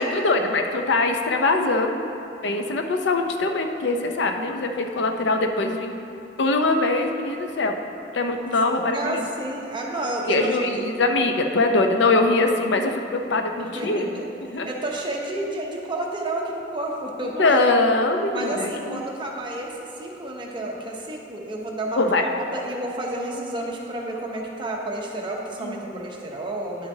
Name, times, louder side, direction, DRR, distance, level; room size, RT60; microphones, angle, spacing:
voice 1, 0.0-2.0 2.4-5.9 6.4-7.7 8.1-9.2 10.3-14.7 17.4-19.0 22.0-22.4 25.6-26.0, left 2 dB, 85° left, 5 dB, 0.6 m, -22 dB
voice 2, 8.9-10.7 13.7-14.2 14.6-17.6 18.3-22.0 22.4-26.9, right 1 dB, 30° right, -1 dB, 0.9 m, -30 dB
11.0 x 5.8 x 2.7 m, 2.7 s
head